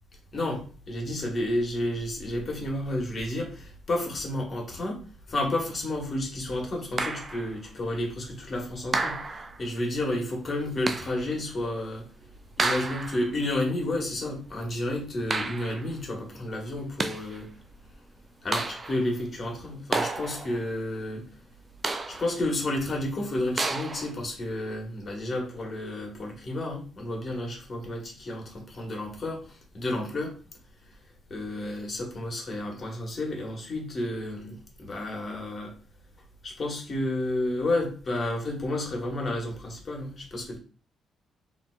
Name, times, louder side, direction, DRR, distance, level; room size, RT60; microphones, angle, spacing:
voice 1, 0.3-5.0 5.3-12.1 12.6-17.5 18.4-21.3 22.1-30.3 31.3-35.7 36.4-40.6, left 1 dB, 40° left, 1.2 m, -31 dB
sound 1, 7.0-7.5 8.9-9.6 10.9-11.3 12.6-13.3 15.3-15.9 16.8-17.4 18.5-19.1 19.9-20.6 21.8-22.4 23.6-24.1, right 3 dB, 30° right, 0.4 m, -31 dB
3.8 x 2.8 x 2.3 m
cardioid pair, 90°, 0 cm